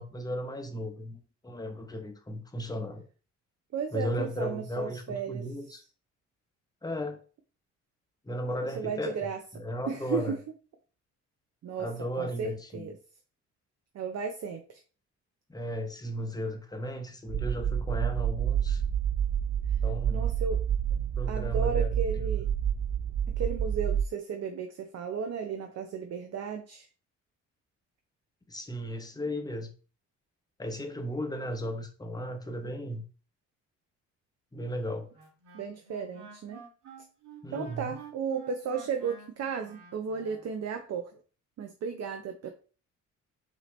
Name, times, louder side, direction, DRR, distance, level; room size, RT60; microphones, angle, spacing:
voice 1, 0.0-3.0 3.9-5.8 6.8-7.2 8.2-10.4 11.8-12.9 15.5-18.8 19.8-20.3 21.0-22.0 28.5-29.7 30.6-33.0 34.5-35.1 37.4-38.0, equal, 15° left, 5 dB, 0.9 m, -35 dB
voice 2, 3.7-5.8 8.8-9.4 9.9-10.3 11.6-11.9 12.2-13.0 13.9-14.6 20.1-20.6 21.3-22.5 23.4-26.9 35.5-36.6 37.5-41.1 41.6-42.5, right 6 dB, 55° right, 5 dB, 0.7 m, -34 dB
sound 1, 17.3-24.1, right 9 dB, 30° right, 0.3 m, -28 dB
Wind instrument woodwind instrument, 35.1-40.5, right 5 dB, 75° right, 1.7 m, -50 dB
5.5 x 2.9 x 3.2 m, 0.37 s
cardioid pair, 90°, 30 cm